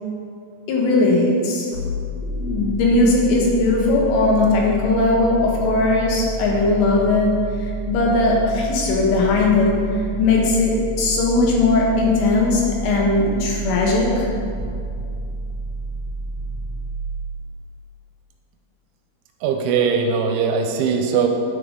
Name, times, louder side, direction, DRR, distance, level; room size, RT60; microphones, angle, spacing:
voice 1, 0.7-1.7 2.2-7.3 7.6-9.8 10.2-14.3 14.6-14.7, left 2 dB, 85° left, -2 dB, 3.9 m, -18 dB
sound 1, 1.7-17.5, right 2 dB, 50° left, 1.4 m, -30 dB
voice 2, 19.4-21.3, right 6 dB, 85° right, 4 dB, 3.0 m, -20 dB
9.8 x 8.0 x 3.8 m, 2.4 s
omnidirectional pair, 5.7 m